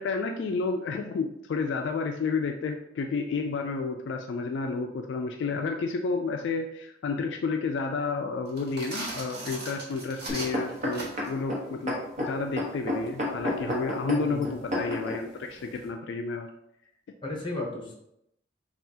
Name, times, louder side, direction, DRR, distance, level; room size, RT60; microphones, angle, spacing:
voice 1, 0.0-16.5, left 4 dB, 65° left, 4 dB, 0.3 m, -31 dB
sound 1, 8.5-11.4, right 2 dB, 55° right, 1.3 m, -38 dB
sound 2, 10.3-15.2 15.9-16.0, left 1 dB, 40° right, 1.1 m, -31 dB
voice 2, 14.1-14.5 17.2-17.9, left 2 dB, 25° left, 0 dB, 0.8 m, -34 dB
5.6 x 2.4 x 2.7 m, 0.80 s
head